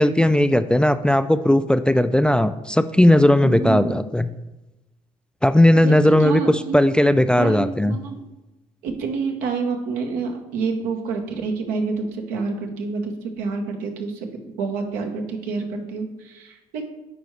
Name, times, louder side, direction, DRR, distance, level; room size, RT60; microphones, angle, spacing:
voice 1, 0.0-4.3 5.4-8.0, left 1 dB, 5° left, 11 dB, 0.3 m, -17 dB
voice 2, 3.4-4.0 5.8-6.8 7.4-8.2 8.8-16.8, right 4 dB, 85° right, 3 dB, 1.0 m, -28 dB
9.3 x 4.7 x 3.1 m, 1.0 s
supercardioid pair, 65°, 14 cm